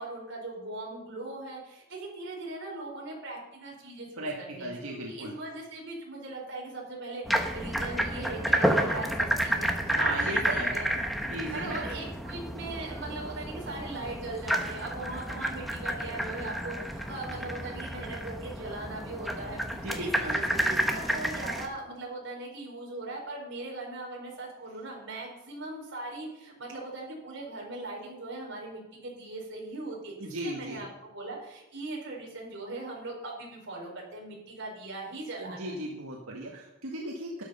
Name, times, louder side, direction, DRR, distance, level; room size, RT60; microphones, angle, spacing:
voice 1, 0.0-10.9 11.5-19.6 19.9-35.8, right 2 dB, 50° right, -1 dB, 4.5 m, -40 dB
voice 2, 4.6-5.4 9.9-10.7 11.3-11.8 19.7-20.4 30.2-30.9 35.4-37.4, right 1 dB, 80° right, -1 dB, 1.8 m, -36 dB
sound 1, 7.3-21.7, equal, ahead, 1.1 m, -30 dB
12.5 x 10.5 x 5.6 m, 0.91 s
head